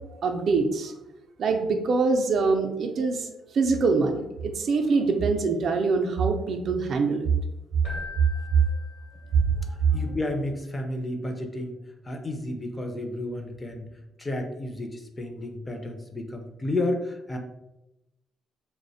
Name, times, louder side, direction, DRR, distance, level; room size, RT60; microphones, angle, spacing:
voice 1, 0.2-0.9 1.4-3.3 3.5-7.3, right 4 dB, 60° right, 5 dB, 0.3 m, -24 dB
Keyboard (musical), 7.8-9.7, left 2 dB, 55° left, 0.9 m, -41 dB
voice 2, 9.9-11.8 12.1-13.9 14.2-17.4, left 1 dB, 20° left, 4 dB, 0.4 m, -31 dB
2.4 x 2.0 x 2.6 m, 0.92 s
cardioid pair, 90°, 0 cm